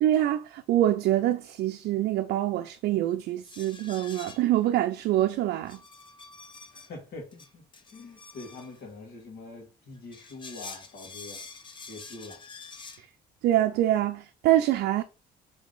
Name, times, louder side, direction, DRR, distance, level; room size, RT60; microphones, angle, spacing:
voice 1, 0.0-5.8 13.4-15.0, right 13 dB, 70° right, 0.4 m, -25 dB
sound 1, 3.4-4.6 5.7-6.9 7.3-8.8 10.0-13.0, left 4 dB, 30° left, 0.7 m, -46 dB
voice 2, 6.7-7.6 7.9-11.4 11.8-12.4, left 3 dB, 65° left, 2.0 m, -44 dB
3.7 x 3.4 x 3.8 m
cardioid pair, 110°, 17 cm